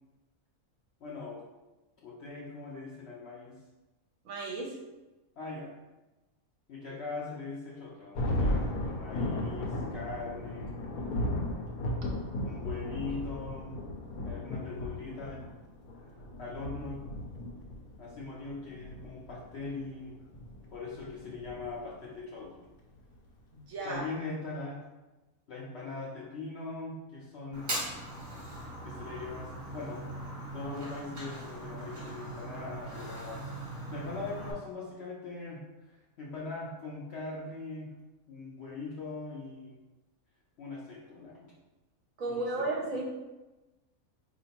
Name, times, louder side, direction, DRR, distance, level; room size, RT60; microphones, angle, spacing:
voice 1, 1.0-1.4 2.0-3.6 5.4-5.7 6.7-10.7 12.4-13.7 14.2-15.4 16.4-17.2 18.0-20.1 20.7-22.7 23.8-24.8 25.5-27.7 28.5-30.0 30.5-35.6 36.2-37.9 38.3-39.8 40.6-41.5 42.3-42.8, left 3 dB, 60° left, -4 dB, 0.8 m, -41 dB
voice 2, 4.2-4.7 23.5-24.0 42.2-43.1, right 2 dB, 70° right, -1 dB, 1.1 m, -34 dB
Thunder, 8.1-22.1, left 1 dB, 90° left, 1.1 m, -35 dB
Fire, 27.5-34.5, right 1 dB, 40° right, 0.9 m, -40 dB
4.2 x 2.9 x 2.9 m, 1.1 s
omnidirectional pair, 1.5 m